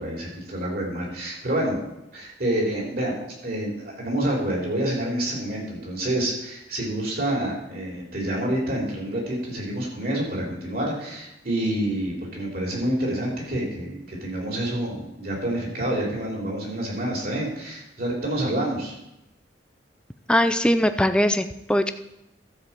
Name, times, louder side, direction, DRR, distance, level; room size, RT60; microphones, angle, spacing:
voice 1, 0.0-1.8 2.1-3.2 3.4-18.9, right 1 dB, 55° right, -2 dB, 3.7 m, -28 dB
voice 2, 20.3-21.9, equal, 5° left, 9 dB, 0.5 m, -21 dB
12.5 x 5.0 x 7.4 m, 0.88 s
head